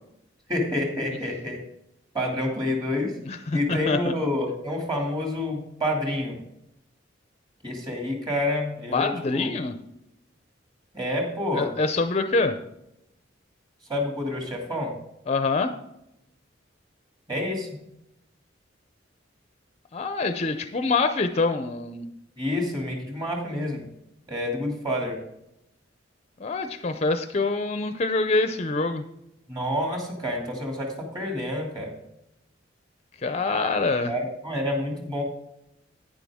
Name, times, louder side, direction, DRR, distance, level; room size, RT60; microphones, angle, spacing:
voice 1, 0.5-1.6 2.1-3.1 3.5-6.4 7.6-9.5 10.9-11.7 13.9-14.9 17.3-17.7 22.4-23.9 24.3-25.2 29.5-31.9 34.1-35.2, left 1 dB, 25° right, 1 dB, 2.5 m, -28 dB
voice 2, 3.2-4.2 8.9-9.7 11.5-12.6 15.3-15.7 19.9-22.1 26.4-29.0 33.2-34.1, left 3 dB, 35° left, 8 dB, 0.5 m, -25 dB
10.0 x 9.6 x 3.6 m, 0.83 s
head